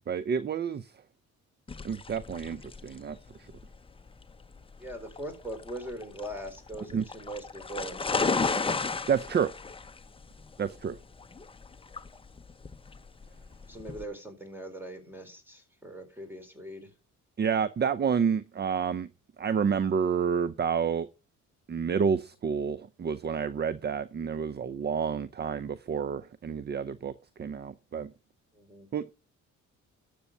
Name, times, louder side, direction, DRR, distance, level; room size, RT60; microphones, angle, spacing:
voice 1, 0.1-0.9 1.8-3.2 6.9-7.0 9.1-9.5 10.6-11.0 17.4-19.1 19.4-21.1 21.7-27.1 27.4-28.1 28.9-29.0, right 7 dB, 35° right, 0.6 m, -29 dB
sound 1, 1.7-14.0, left 4 dB, 20° left, 0.8 m, -35 dB
voice 2, 4.8-8.8 13.7-16.9 28.5-28.9, right 1 dB, 5° right, 4.0 m, -41 dB
12.5 x 7.0 x 5.5 m
cardioid pair, 90°, 30 cm